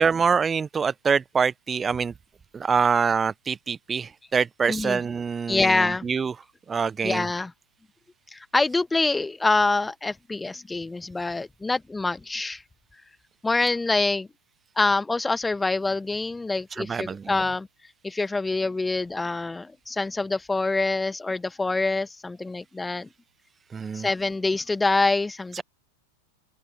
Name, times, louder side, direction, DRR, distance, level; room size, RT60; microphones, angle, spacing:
voice 1, 0.0-2.1 2.5-6.3 6.7-7.3 16.8-17.2 23.7-24.1 25.6-25.7, right 6 dB, 15° right, 0.9 m, -25 dB
voice 2, 4.7-5.0 5.5-6.1 7.0-7.5 8.3-12.6 13.4-14.3 14.8-17.7 18.0-23.1 23.9-25.6, left 3 dB, 10° left, 1.3 m, -25 dB
open air
figure-of-eight pair, 90°, 0 cm